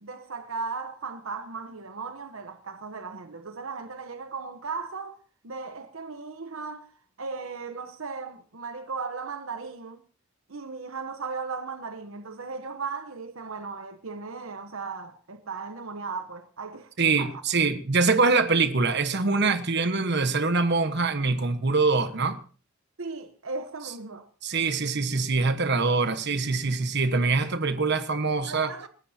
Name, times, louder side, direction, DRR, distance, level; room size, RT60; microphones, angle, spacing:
voice 1, 0.0-5.2 5.4-6.9 7.2-10.0 10.5-16.9 17.2-17.4 23.0-24.3 28.5-28.9, right 4 dB, 80° right, 1.0 m, -36 dB
voice 2, 17.0-22.4 24.4-28.7, right 4 dB, 55° right, 1.3 m, -24 dB
28.0 x 13.0 x 2.8 m
head